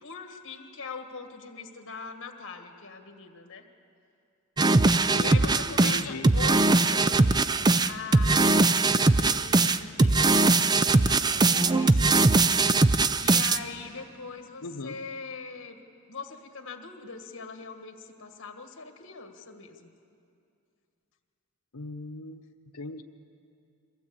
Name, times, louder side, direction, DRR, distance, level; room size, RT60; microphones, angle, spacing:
voice 1, 0.0-3.6 5.2-7.5 7.8-12.3 13.2-15.8 16.1-19.9, left 5 dB, 60° left, 6 dB, 1.7 m, -42 dB
sound 1, 4.6-13.6, right 3 dB, 20° right, 0.4 m, -21 dB
voice 2, 5.1-6.4 14.6-15.0 21.7-22.5 22.7-23.0, left 3 dB, 85° left, 7 dB, 0.9 m, -38 dB
23.0 x 15.5 x 8.5 m, 2.5 s
head